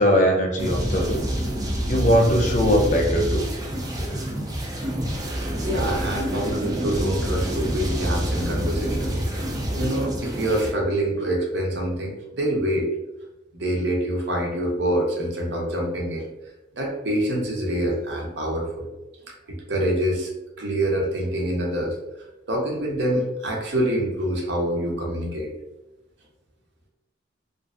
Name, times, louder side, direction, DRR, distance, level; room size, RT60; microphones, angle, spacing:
voice 1, 0.0-1.3 1.9-3.5, equal, 40° left, 1 dB, 0.5 m, -20 dB
sound 1, 0.6-10.7, right 1 dB, 20° right, 0.4 m, -27 dB
voice 2, 5.3-9.2 9.7-12.9 13.5-16.3 16.7-18.9 19.3-20.3 20.6-22.0 22.5-25.5, right 1 dB, 65° right, 0 dB, 0.6 m, -26 dB
2.5 x 2.4 x 2.4 m, 0.99 s
head